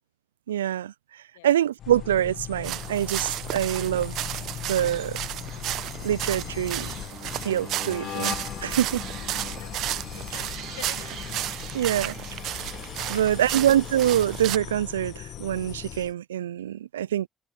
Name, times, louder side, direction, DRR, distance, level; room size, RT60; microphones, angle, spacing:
voice 1, 0.5-4.1 4.7-5.2 6.0-6.9 7.4-9.0 11.7-12.2 13.1-17.3, right 11 dB, 85° right, 0.4 m, -25 dB
sound 1, 1.8-16.1, left 11 dB, 60° left, 1.4 m, -38 dB
sound 2, 2.6-14.6, right 14 dB, 65° right, 1.0 m, -33 dB
voice 2, 9.2-9.8 10.1-11.1 13.0-13.7, left 19 dB, 80° left, 1.6 m, -47 dB
hypercardioid pair, 50°, 0 cm